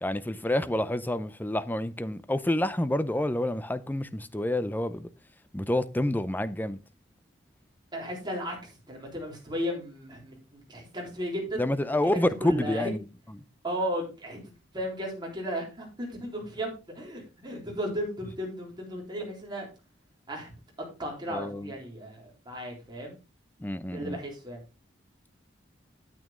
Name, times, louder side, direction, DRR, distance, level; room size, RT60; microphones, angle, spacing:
voice 1, 0.0-5.1 5.5-6.8 11.6-13.0 21.3-21.7 23.6-24.2, left 1 dB, 10° left, 0.5 m, -28 dB
voice 2, 7.9-11.7 12.0-12.9 13.6-16.7 16.9-19.7 20.3-20.5 21.0-23.2 23.9-24.6, equal, 25° right, 3.8 m, -35 dB
9.2 x 8.6 x 3.7 m
head